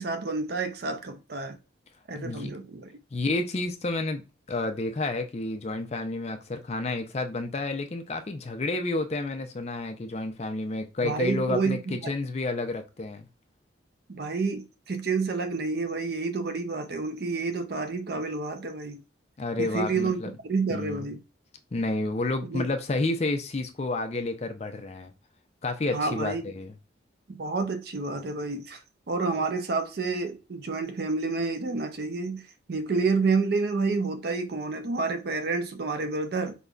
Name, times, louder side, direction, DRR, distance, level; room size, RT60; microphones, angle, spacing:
voice 1, 0.0-1.6 2.1-2.9 11.0-12.1 14.1-19.0 19.6-21.2 22.5-22.7 25.9-26.4 27.3-28.8 29.1-32.4 32.7-36.5, right 4 dB, 55° right, 0.5 m, -29 dB
voice 2, 2.1-2.5 3.1-4.2 4.5-13.3 19.4-20.3 20.7-21.0 21.7-25.1 25.6-26.7, left 2 dB, 35° left, 0.4 m, -30 dB
5.1 x 2.1 x 2.3 m
head